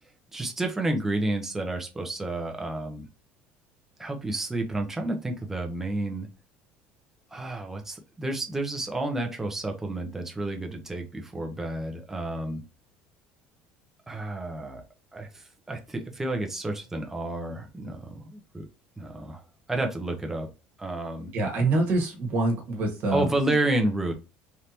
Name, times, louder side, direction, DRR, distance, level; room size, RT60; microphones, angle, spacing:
voice 1, 0.3-3.1 4.0-6.3 7.3-12.6 14.1-14.8 15.1-18.6 19.0-19.4 19.7-20.5 20.8-21.3 23.1-24.1, right 2 dB, 10° right, 3 dB, 0.6 m, -30 dB
voice 2, 21.3-23.3, right 2 dB, 55° right, 2 dB, 1.3 m, -25 dB
3.4 x 2.8 x 2.8 m, 0.30 s
cardioid pair, 145°, 4 cm